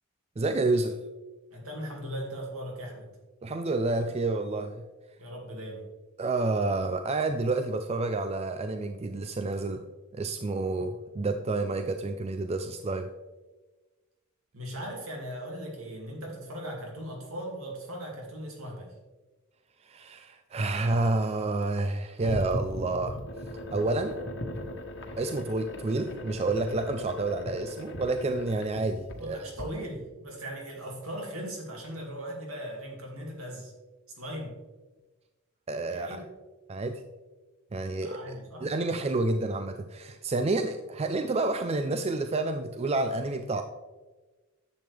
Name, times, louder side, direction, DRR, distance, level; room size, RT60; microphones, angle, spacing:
voice 1, 0.4-1.0 3.4-4.8 6.2-9.9 10.1-13.1 19.8-23.2 23.7-24.2 25.2-29.5 35.7-36.2 36.7-37.0 37.7-38.4 38.6-43.6, right 2 dB, 30° right, 8 dB, 0.4 m, -29 dB
voice 2, 1.5-3.1 5.2-5.9 14.5-18.9 29.2-33.7 34.2-34.6 35.9-36.3 38.0-38.7, equal, 70° right, 0 dB, 2.5 m, -38 dB
sound 1, 22.2-29.6, equal, 55° left, 1.3 m, -38 dB
10.5 x 7.6 x 3.4 m, 1.2 s
head